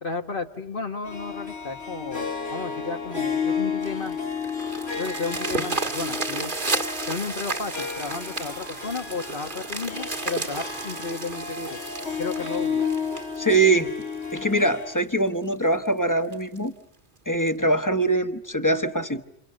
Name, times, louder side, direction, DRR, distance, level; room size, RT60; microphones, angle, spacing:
voice 1, 0.0-4.2 4.9-6.5 7.1-11.8 12.2-12.9, left 4 dB, 55° left, 4 dB, 1.6 m, -33 dB
Harp, 1.0-15.0, left 5 dB, 70° left, 3.1 m, -32 dB
sound 1, 3.8-14.3 14.9-15.0 15.4-15.5 15.9-16.0 16.3-16.6 17.5-17.6, right 3 dB, 50° right, 1.8 m, -33 dB
voice 2, 13.4-13.9 14.3-16.7 17.3-19.2, right 2 dB, 20° left, 8 dB, 1.2 m, -23 dB
29.0 x 28.5 x 6.6 m, 0.77 s
omnidirectional pair, 1.1 m